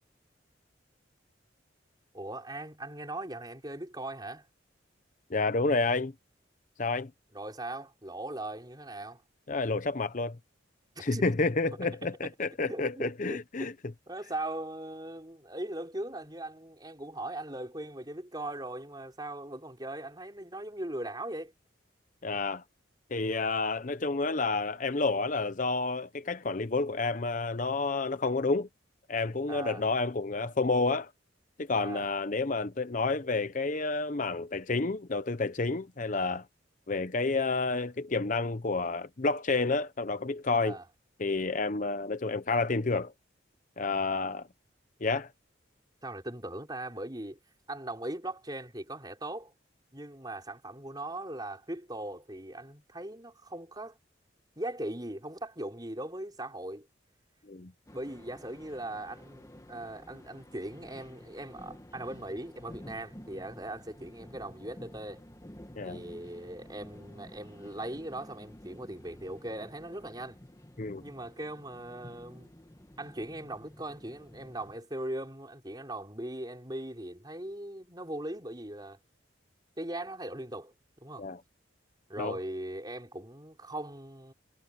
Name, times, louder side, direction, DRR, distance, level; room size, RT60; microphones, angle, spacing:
voice 1, 2.1-4.5 7.3-9.2 10.9-11.3 12.2-12.3 12.6-13.7 14.1-21.5 29.5-29.8 31.8-32.1 40.6-40.8 46.0-47.4 47.7-49.5 49.9-54.0 54.6-56.9 57.9-65.2 65.8-70.4 71.0-72.5 73.0-79.0 79.8-80.7 81.0-81.3 82.1-84.3, right 1 dB, 20° right, 4.9 m, -39 dB
voice 2, 5.3-6.1 6.8-7.1 9.5-10.4 11.0-13.7 22.2-22.6 23.1-28.7 29.1-31.1 31.6-36.4 36.9-40.8 41.2-43.1 43.8-44.5 45.0-45.3 57.5-57.7 65.8-66.0 70.8-71.0 81.2-81.4 82.2-82.4, left 3 dB, 40° left, 0.8 m, -30 dB
sound 1, 57.9-74.8, equal, 15° left, 1.6 m, -51 dB
head